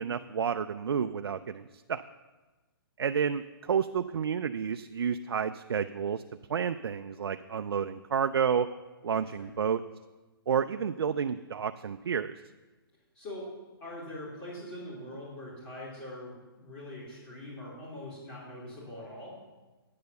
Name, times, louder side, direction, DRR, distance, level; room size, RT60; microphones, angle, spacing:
voice 1, 0.0-2.0 3.0-6.2 6.5-8.7 9.0-9.8 10.5-12.4, right 7 dB, 85° right, 9 dB, 0.4 m, -30 dB
voice 2, 13.1-13.5 13.8-19.4, left 1 dB, 25° left, -8 dB, 3.0 m, -43 dB
9.4 x 6.8 x 6.8 m, 1.2 s
hypercardioid pair, 160°, 13 cm